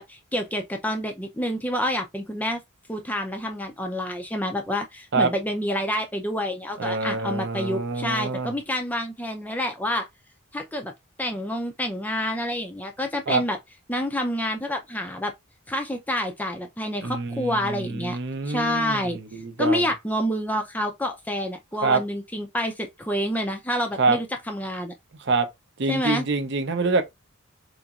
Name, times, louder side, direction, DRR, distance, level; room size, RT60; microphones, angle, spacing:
voice 1, 0.0-2.6 2.9-10.1 10.5-10.9 11.2-13.6 13.9-15.3 15.7-18.2 18.4-19.2 19.6-24.9 25.9-26.3, equal, 5° left, 0.4 m, -28 dB
voice 2, 6.8-8.5 13.3-13.4 17.0-19.9 21.8-22.0 24.0-24.2 25.2-25.5 25.8-27.0, right 3 dB, 50° right, 0.5 m, -25 dB
3.9 x 2.9 x 2.4 m
head